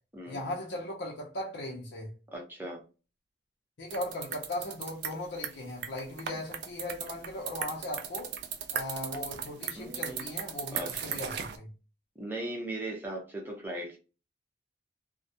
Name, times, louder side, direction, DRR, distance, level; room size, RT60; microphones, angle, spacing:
voice 1, 0.3-2.1 3.8-8.3 8.7-11.7, left 1 dB, 70° left, 0.6 m, -38 dB
voice 2, 2.3-2.8 6.3-6.4 9.7-10.3 10.7-11.2 12.2-14.0, right 1 dB, 10° right, 0.7 m, -38 dB
sound 1, 3.9-11.6, right 8 dB, 60° right, 0.4 m, -37 dB
2.3 x 2.0 x 2.7 m
head